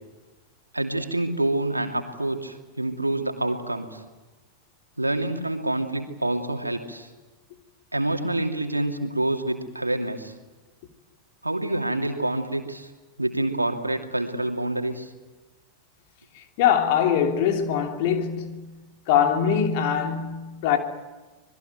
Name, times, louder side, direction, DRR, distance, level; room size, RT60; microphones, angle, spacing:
voice 1, 0.7-4.0 5.0-7.1 7.9-10.3 11.4-12.9 13.2-15.1, right 1 dB, 85° right, 2.7 m, -27 dB
voice 2, 16.3-20.8, left 8 dB, 50° left, 3.2 m, -23 dB
26.0 x 20.5 x 9.3 m
figure-of-eight pair, 90°, 0 cm